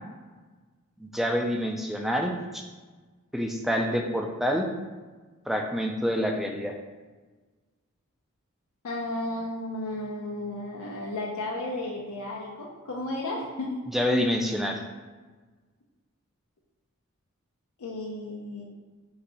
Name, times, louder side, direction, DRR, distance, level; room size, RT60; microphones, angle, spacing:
voice 1, 1.0-2.6 3.3-4.7 5.5-6.7 13.9-14.8, equal, ahead, 2 dB, 0.3 m, -27 dB
voice 2, 8.8-13.8 17.8-18.6, left 1 dB, 85° left, -3 dB, 0.5 m, -33 dB
3.9 x 2.7 x 4.1 m, 1.3 s
head